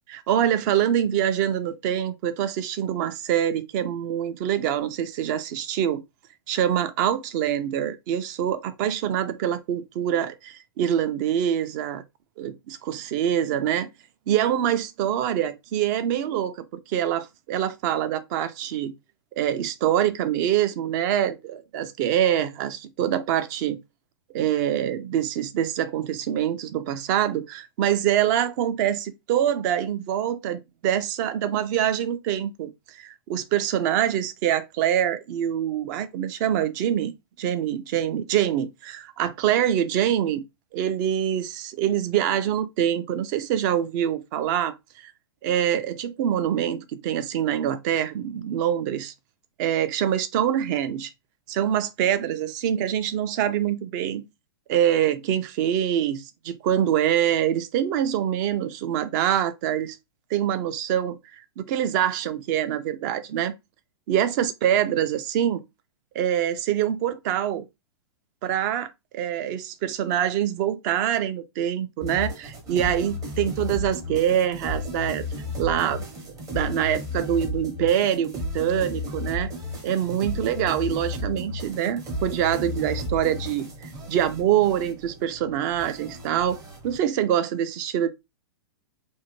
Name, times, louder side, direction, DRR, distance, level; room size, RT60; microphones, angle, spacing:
voice 1, 0.1-6.0 6.5-12.0 12.4-13.9 14.3-18.9 19.4-23.8 24.3-37.1 37.4-40.4 40.7-45.1 45.4-49.1 49.6-51.1 51.5-54.2 54.7-60.0 60.3-63.5 64.1-65.6 66.1-67.6 68.4-75.3 75.6-76.0 76.5-79.5 79.8-83.7 84.1-86.6 86.8-88.1, right 10 dB, 45° right, 0.5 m, -25 dB
sound 1, 72.0-87.0, left 1 dB, 25° right, 0.8 m, -34 dB
2.6 x 2.2 x 2.9 m
hypercardioid pair, 125°, 13 cm